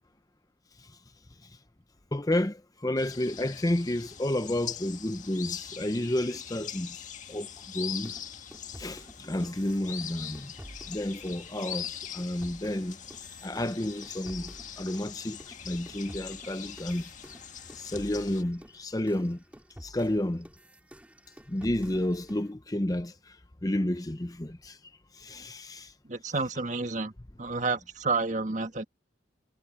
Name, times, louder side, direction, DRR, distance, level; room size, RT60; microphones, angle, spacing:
voice 1, 2.1-7.0 7.3-7.5 7.7-8.1 8.8-10.5 10.9-13.0 13.4-15.4 15.6-17.0 17.7-19.4 19.8-20.5 21.5-23.1 23.6-24.8 25.2-25.9, left 1 dB, 20° left, 0.8 m, -31 dB
sound 1, 3.0-18.4, left 9 dB, 40° left, 1.9 m, -42 dB
sound 2, 8.0-15.1 15.4-22.5, equal, 5° right, 2.6 m, -50 dB
voice 2, 26.0-27.1 27.4-28.8, right 3 dB, 40° right, 1.6 m, -30 dB
head